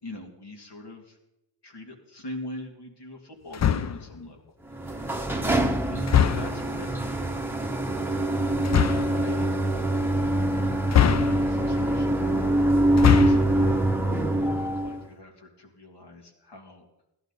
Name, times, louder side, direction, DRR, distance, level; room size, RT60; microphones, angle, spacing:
voice 1, 0.0-1.2 1.6-4.4 4.8-4.9 5.3-7.6 8.5-9.5 11.0-12.5 12.9-13.9 14.3-16.9, left 2 dB, 75° left, 1 dB, 2.7 m, -42 dB
sound 1, 3.5-4.1 6.1-6.7 8.6-9.2 10.9-11.7 12.9-13.6, left 9 dB, 40° left, 0.5 m, -22 dB
sound 2, 4.7-15.0, right 1 dB, 5° right, 1.0 m, -24 dB
17.5 x 11.5 x 4.1 m, 0.89 s
wide cardioid pair, 115°, 41 cm